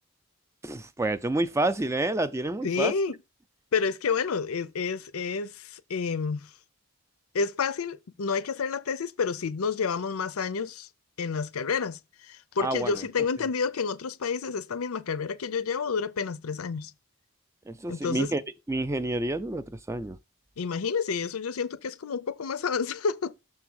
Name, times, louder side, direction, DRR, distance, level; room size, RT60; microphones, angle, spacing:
voice 1, 0.6-2.9 12.6-13.0 17.7-18.4 18.7-20.2, right 2 dB, 15° right, 0.4 m, -29 dB
voice 2, 2.6-3.2 3.7-6.5 7.3-10.9 11.2-16.9 17.9-18.3 20.6-23.3, left 5 dB, 90° left, 0.6 m, -29 dB
6.7 x 3.5 x 6.2 m
head